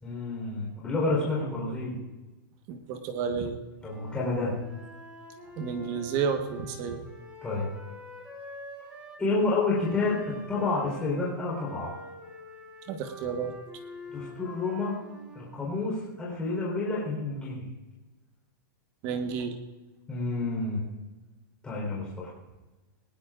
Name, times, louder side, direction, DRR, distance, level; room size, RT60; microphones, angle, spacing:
voice 1, 0.0-2.0 3.8-4.5 7.4-7.7 9.2-10.2 10.5-11.9 14.1-14.9 15.3-17.6 20.1-20.8 21.6-22.3, left 3 dB, 10° left, -5 dB, 3.9 m, -29 dB
voice 2, 2.7-3.6 5.6-7.0 12.9-13.5 19.0-19.6, right 6 dB, 30° right, 6 dB, 1.3 m, -31 dB
Wind instrument woodwind instrument, 3.8-9.2 9.7-15.6, left 1 dB, 10° right, 3.8 m, -46 dB
19.0 x 18.5 x 2.5 m, 1.1 s
supercardioid pair, 165°, 12 cm